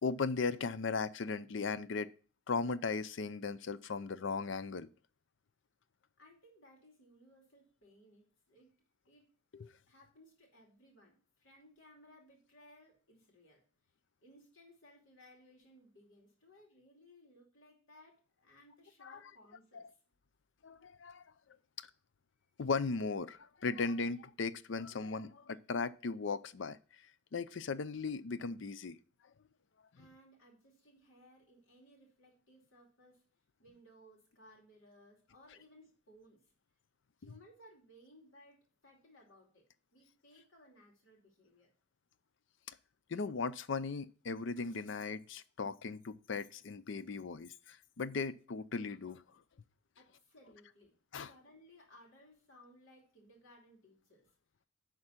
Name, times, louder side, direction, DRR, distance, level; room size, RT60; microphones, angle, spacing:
voice 1, 0.0-2.1 2.5-4.9 9.5-9.7 19.0-19.2 19.7-19.8 20.6-21.2 22.6-26.8 27.3-29.0 42.7-42.8 43.1-49.2 51.1-51.3, left 4 dB, 65° left, 0.5 m, -37 dB
voice 2, 6.2-8.7 9.1-9.3 9.9-13.6 14.2-20.0 30.0-33.2 33.6-36.4 37.2-39.6 39.9-41.7 50.0-54.4, equal, 85° left, 2.7 m, -62 dB
10.5 x 3.9 x 5.7 m
head